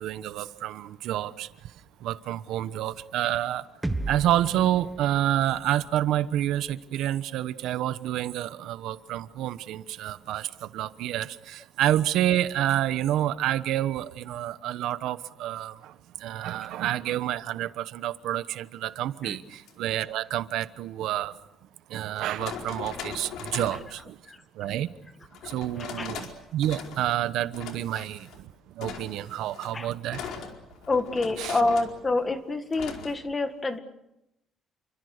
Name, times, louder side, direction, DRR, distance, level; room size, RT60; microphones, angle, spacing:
voice 1, 0.0-1.7 2.0-3.6 4.1-21.3 21.9-24.2 24.5-24.9 25.4-28.5 28.7-30.2 31.4-31.6, right 12 dB, 85° right, 1.1 m, -29 dB
sound 1, 3.8-7.7, right 2 dB, 5° right, 1.4 m, -37 dB
sound 2, 19.5-19.7 21.3-21.4 22.1-23.9 25.3-26.3 26.6-27.2 27.5-28.4 28.8-32.0 32.7-33.1, left 6 dB, 85° left, 4.6 m, -40 dB
voice 2, 23.7-24.4 25.8-26.1 27.9-28.1 29.7-29.9 30.9-33.8, left 2 dB, 20° left, 1.9 m, -28 dB
29.5 x 25.0 x 6.7 m
cardioid pair, 165°, 0 cm